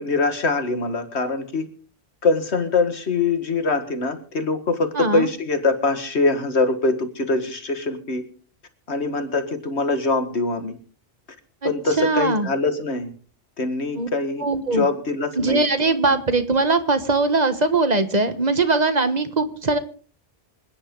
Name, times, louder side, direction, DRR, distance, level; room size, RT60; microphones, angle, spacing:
voice 1, 0.0-1.7 2.2-8.2 8.9-10.8 11.6-13.1 13.6-15.6, left 3 dB, 65° left, 8 dB, 2.1 m, -23 dB
voice 2, 4.9-5.3 11.6-11.7 12.0-12.5 13.9-14.1 14.4-14.9 15.4-19.8, right 3 dB, 35° right, 10 dB, 1.3 m, -21 dB
26.5 x 10.0 x 3.8 m, 0.40 s
omnidirectional pair, 1.2 m